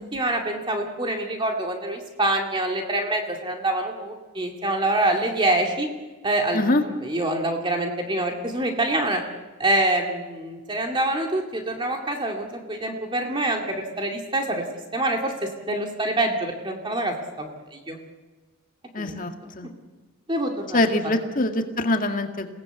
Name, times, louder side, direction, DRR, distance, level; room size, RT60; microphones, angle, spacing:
voice 1, 0.1-5.9 6.2-9.2 9.6-14.6 14.9-15.3 15.7-18.0 19.0-19.1 19.6-19.7 20.3-20.8, right 1 dB, 25° right, 2 dB, 2.3 m, -26 dB
voice 2, 18.9-19.7 20.7-22.5, left 2 dB, 40° left, 5 dB, 2.0 m, -24 dB
28.0 x 18.0 x 8.3 m, 1.3 s
head